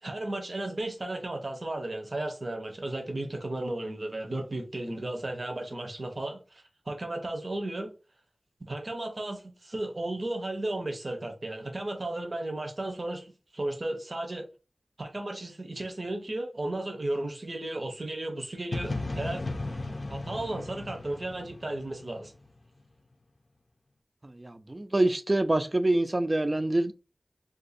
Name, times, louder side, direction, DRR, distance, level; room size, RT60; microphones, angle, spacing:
voice 1, 0.0-7.9 8.6-14.5 15.0-19.4 20.1-22.3, right 1 dB, 60° right, 0.8 m, -34 dB
sound 1, 18.7-22.6, left 2 dB, 60° left, 0.4 m, -36 dB
voice 2, 24.2-26.9, right 1 dB, 40° right, 0.4 m, -26 dB
2.6 x 2.4 x 4.0 m
cardioid pair, 40°, 0 cm